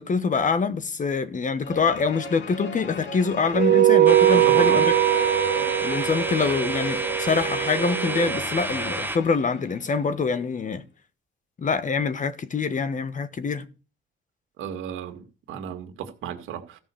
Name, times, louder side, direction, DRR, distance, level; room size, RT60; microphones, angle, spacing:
voice 1, 0.0-4.9 5.5-10.8 11.6-13.7, left 5 dB, 40° left, 1.4 m, -25 dB
sound 1, 1.6-10.2, left 3 dB, 70° left, 2.4 m, -36 dB
sound 2, 3.5-8.3, right 12 dB, 70° right, 1.0 m, -21 dB
sound 3, 4.1-9.2, right 2 dB, 10° right, 0.9 m, -31 dB
voice 2, 4.3-4.8 14.6-16.8, right 9 dB, 90° right, 2.0 m, -34 dB
14.5 x 5.5 x 6.9 m
cardioid pair, 90°, 20 cm